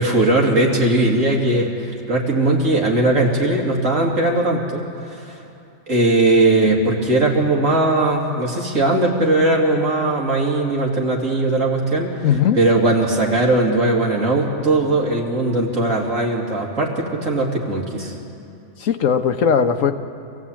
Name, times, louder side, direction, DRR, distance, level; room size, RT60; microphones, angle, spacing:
voice 1, 0.0-5.4 5.9-12.3 12.5-18.2, right 2 dB, 90° right, -1 dB, 3.1 m, -19 dB
voice 2, 12.2-12.6 18.8-19.9, left 7 dB, 80° left, 8 dB, 1.4 m, -18 dB
25.0 x 15.5 x 8.8 m, 2.7 s
omnidirectional pair, 1.3 m